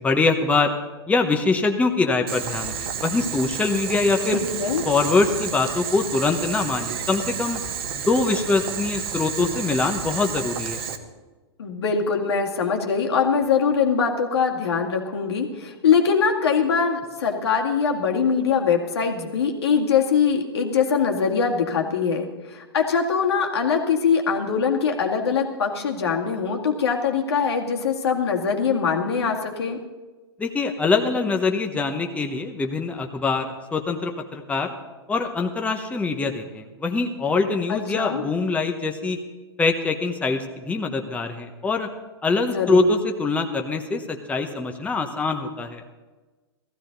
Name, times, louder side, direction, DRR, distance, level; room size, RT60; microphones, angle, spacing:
voice 1, 0.0-0.7 1.1-4.4 4.8-7.6 7.9-10.8 30.4-34.7 35.1-39.2 39.6-41.9 42.2-45.8, left 3 dB, 10° left, 3 dB, 1.1 m, -23 dB
Boiling, 2.3-11.0, right 7 dB, 60° right, 1.5 m, -31 dB
voice 2, 4.3-4.8 11.6-29.8 37.7-38.2 42.5-42.9, left 6 dB, 75° left, 2 dB, 2.1 m, -22 dB
16.0 x 14.5 x 4.0 m, 1.2 s
hypercardioid pair, 115°, 14 cm